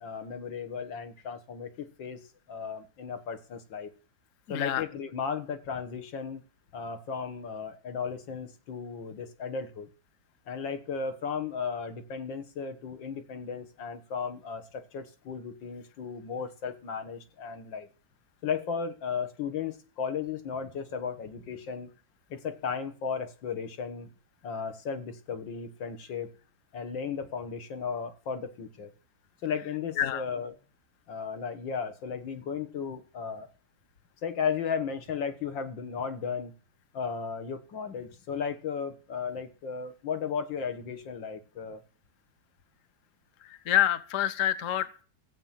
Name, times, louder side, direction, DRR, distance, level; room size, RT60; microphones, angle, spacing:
voice 1, 0.0-2.2 2.5-3.9 4.5-6.4 6.7-9.9 10.5-17.9 18.4-21.9 22.3-24.1 24.4-26.3 26.7-28.9 29.4-30.5 31.1-33.5 34.2-36.5 36.9-41.8, left 6 dB, 80° left, 8 dB, 2.2 m, -35 dB
voice 2, 4.5-4.8 30.0-30.2 43.4-45.0, left 12 dB, 55° left, 14 dB, 1.1 m, -27 dB
15.0 x 7.8 x 7.4 m, 0.38 s
omnidirectional pair, 2.0 m